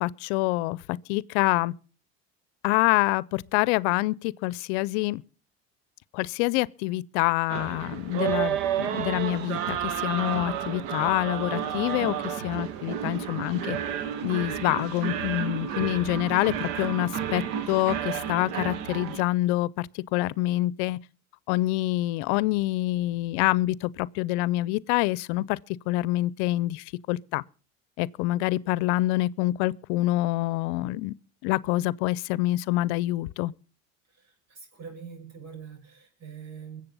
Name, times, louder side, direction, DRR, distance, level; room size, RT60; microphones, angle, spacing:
voice 1, 0.0-1.7 2.6-5.2 6.1-13.8 14.2-21.0 21.5-25.6 25.9-27.4 28.0-31.1 31.4-33.5, left 18 dB, 80° left, 0.6 m, -26 dB
sound 1, 7.5-19.2, right 9 dB, 75° right, 2.0 m, -31 dB
voice 2, 34.5-36.8, right 6 dB, 50° right, 6.3 m, -43 dB
22.5 x 7.8 x 5.4 m
supercardioid pair, 90°, 34 cm